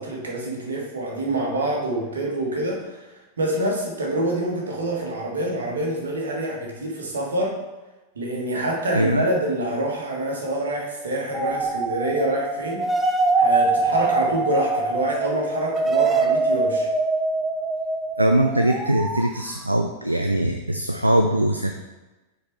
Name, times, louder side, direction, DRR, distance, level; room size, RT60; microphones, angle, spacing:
voice 1, 0.0-3.1 3.4-7.6 8.1-12.9 13.4-16.9, right 1 dB, 70° right, -1 dB, 1.5 m, -26 dB
voice 2, 8.9-9.2 13.4-13.5 18.2-21.7, right 1 dB, 85° right, 5 dB, 0.3 m, -21 dB
sound 1, 11.3-19.5, right 3 dB, 15° right, 0.6 m, -23 dB
6.7 x 4.0 x 4.6 m, 1.1 s
figure-of-eight pair, 90°, 0 cm